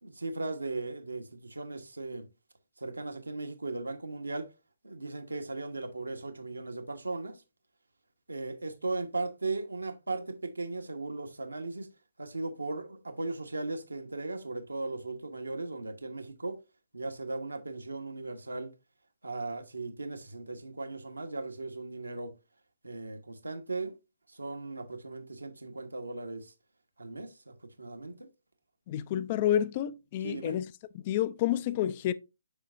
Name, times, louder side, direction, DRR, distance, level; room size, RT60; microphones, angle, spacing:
voice 1, 0.0-2.2 2.8-4.5 4.8-7.4 8.3-11.9 12.2-16.6 16.9-18.7 19.2-22.3 22.8-24.0 24.3-26.5 27.0-28.3 30.2-30.6, right 3 dB, 75° right, 1.3 m, -37 dB
voice 2, 28.9-30.7 30.9-32.1, left 11 dB, 30° left, 0.4 m, -29 dB
6.9 x 5.4 x 2.6 m
figure-of-eight pair, 135°, 0 cm